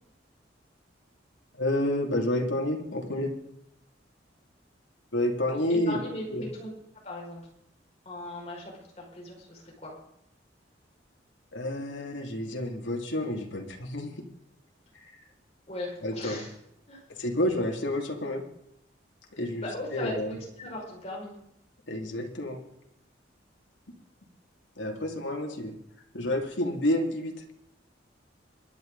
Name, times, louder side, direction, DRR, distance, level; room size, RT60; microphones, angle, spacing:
voice 1, 1.5-3.3 5.1-6.0 6.3-6.5 11.5-14.1 15.0-15.1 16.0-16.4 17.2-18.4 19.4-20.3 21.9-22.6 24.8-25.7 26.1-27.3, left 1 dB, 90° left, 2 dB, 2.6 m, -29 dB
voice 2, 5.7-6.7 7.0-7.4 8.1-9.9 15.7-16.5 16.9-17.2 19.6-21.4, left 1 dB, 35° left, -3 dB, 5.7 m, -38 dB
23.5 x 11.0 x 4.0 m, 0.78 s
head